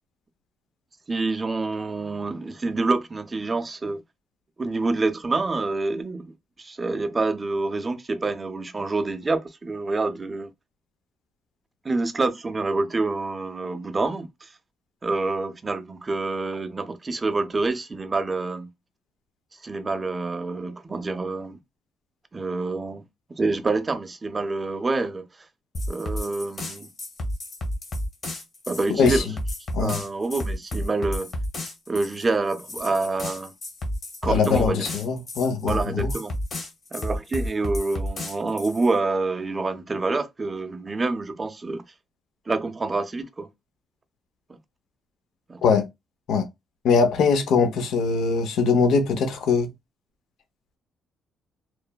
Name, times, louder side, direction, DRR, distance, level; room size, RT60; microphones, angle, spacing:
voice 1, 1.1-4.0 4.6-10.5 11.8-14.5 15.0-18.7 19.6-21.6 22.3-23.0 23.4-25.3 25.9-26.9 28.7-29.3 29.8-31.3 31.9-33.5 34.2-34.9 35.7-36.3 36.9-41.8 42.5-43.5 45.5-45.6, right 3 dB, 25° right, 0.4 m, -27 dB
sound 1, 25.7-38.9, left 1 dB, 45° left, 1.0 m, -31 dB
voice 2, 34.2-36.1 45.6-45.9 46.3-46.4 46.8-49.7, left 5 dB, 80° left, 0.6 m, -21 dB
3.0 x 2.0 x 2.2 m
cardioid pair, 90°, 0 cm